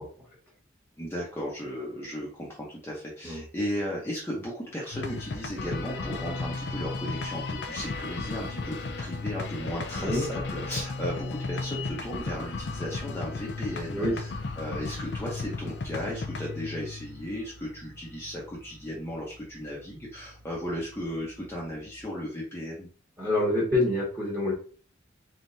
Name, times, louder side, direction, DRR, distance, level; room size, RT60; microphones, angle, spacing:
voice 1, 1.0-14.3 14.6-22.9, equal, 15° left, -5 dB, 0.9 m, -35 dB
sound 1, 4.9-22.0, left 3 dB, 60° left, 0.5 m, -36 dB
voice 2, 10.0-10.3 13.9-14.2 23.2-24.5, left 1 dB, 15° right, -6 dB, 1.6 m, -26 dB
4.0 x 3.7 x 2.7 m, 0.40 s
head